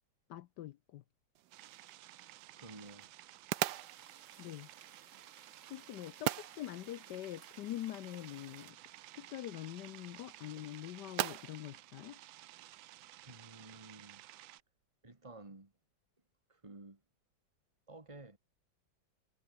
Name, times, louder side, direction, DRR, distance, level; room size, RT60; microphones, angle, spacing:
voice 1, 0.3-1.0 4.4-4.7 5.7-8.8 9.1-12.2, left 13 dB, 70° left, 1.1 m, -44 dB
sound 1, 1.3-13.0, right 13 dB, 65° right, 1.2 m, -44 dB
sound 2, 1.5-14.6, right 15 dB, 80° right, 1.5 m, -55 dB
voice 2, 2.6-3.1 13.3-14.3 15.0-15.7 16.5-17.0 17.9-18.4, right 2 dB, 15° right, 2.1 m, -52 dB
sound 3, 3.5-8.7, right 6 dB, 40° right, 1.6 m, -61 dB
omnidirectional pair, 2.2 m